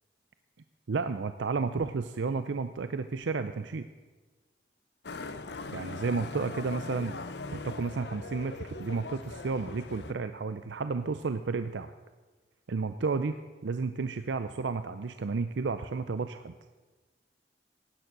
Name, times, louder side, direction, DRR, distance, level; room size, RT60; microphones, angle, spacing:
voice 1, 0.9-3.9 5.7-7.1 7.5-11.9 12.7-13.4 13.6-16.5, right 4 dB, 85° right, 10 dB, 0.5 m, -32 dB
Motorcycle, 5.0-10.1, left 3 dB, 65° left, 0.8 m, -40 dB
16.5 x 9.4 x 6.0 m, 1.3 s
head